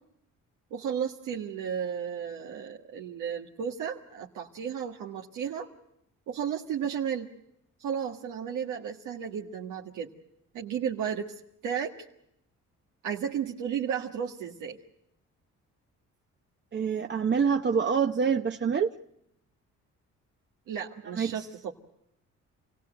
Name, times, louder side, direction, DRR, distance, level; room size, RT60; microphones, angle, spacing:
voice 1, 0.7-5.7 6.3-7.3 7.8-10.1 10.5-11.3 11.6-11.9 13.0-14.8 20.7-21.7, right 8 dB, 85° right, 0 dB, 1.7 m, -33 dB
voice 2, 16.7-18.9 21.1-21.5, right 6 dB, 35° right, 5 dB, 0.9 m, -26 dB
27.5 x 17.5 x 7.8 m, 0.79 s
cardioid pair, 90°, 30 cm